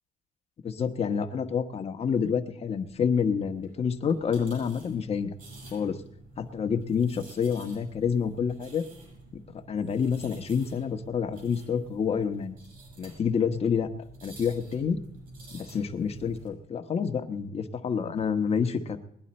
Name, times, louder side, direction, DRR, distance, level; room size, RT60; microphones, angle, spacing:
voice 1, 0.6-5.3 5.7-6.0 6.4-8.8 9.3-12.6 13.0-13.9 14.2-15.0 15.5-19.0, left 6 dB, 35° left, 6 dB, 1.1 m, -28 dB
sound 1, 2.8-16.5, right 2 dB, 55° right, 7.4 m, -50 dB
20.5 x 11.0 x 4.3 m, 0.75 s
cardioid pair, 110°, 17 cm